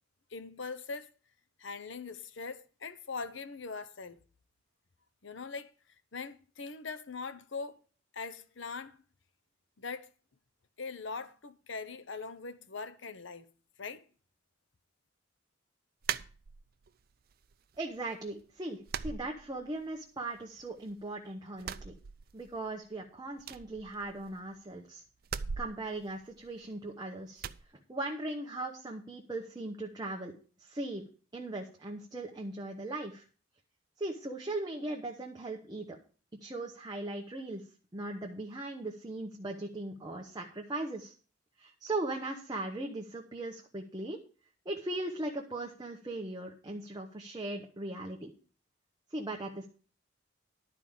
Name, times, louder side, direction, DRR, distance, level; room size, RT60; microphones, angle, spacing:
voice 1, 0.3-1.1 1.6-4.2 5.2-5.7 6.1-7.8 8.1-9.0 9.8-10.1 10.8-13.5 13.8-14.0, left 4 dB, 70° left, 0.9 m, -41 dB
sound 1, 16.0-16.9 17.3-18.0 18.3-18.4 18.9-20.0 20.3-21.1 21.5-22.7 23.0-23.1 23.4-24.6 25.2-26.9 27.4-27.7, right 7 dB, 50° right, 0.5 m, -40 dB
voice 2, 17.8-21.9 22.3-25.0 25.6-27.4 27.9-30.3 30.6-33.2 34.0-36.0 36.4-37.6 37.9-41.1 41.6-44.2 44.6-48.3 49.1-49.7, right 2 dB, 20° right, 1.0 m, -39 dB
11.5 x 4.9 x 7.2 m
head